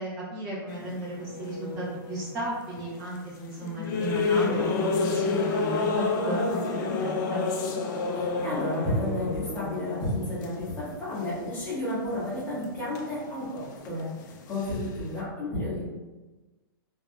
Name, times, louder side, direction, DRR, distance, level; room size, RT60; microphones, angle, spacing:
voice 1, 0.0-7.4, right 1 dB, 30° right, -7 dB, 0.7 m, -34 dB
sound 1, 0.7-3.2 3.6-11.8 12.1-13.4 13.7-15.2, left 4 dB, 50° left, 0.4 m, -30 dB
voice 2, 8.1-14.1 14.5-15.8, left 1 dB, 15° left, -9 dB, 1.1 m, -31 dB
3.3 x 2.6 x 2.2 m, 1.2 s
hypercardioid pair, 155°, 13 cm